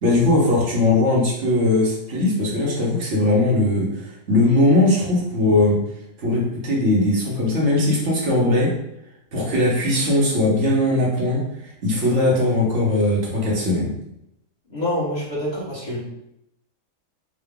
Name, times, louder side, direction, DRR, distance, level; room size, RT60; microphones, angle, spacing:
voice 1, 0.0-5.8 6.2-8.7 9.3-11.4 11.8-13.9, left 2 dB, 50° right, -4 dB, 1.3 m, -19 dB
voice 2, 14.7-16.0, left 1 dB, 25° left, -9 dB, 1.5 m, -26 dB
3.8 x 2.5 x 3.6 m, 0.80 s
omnidirectional pair, 1.8 m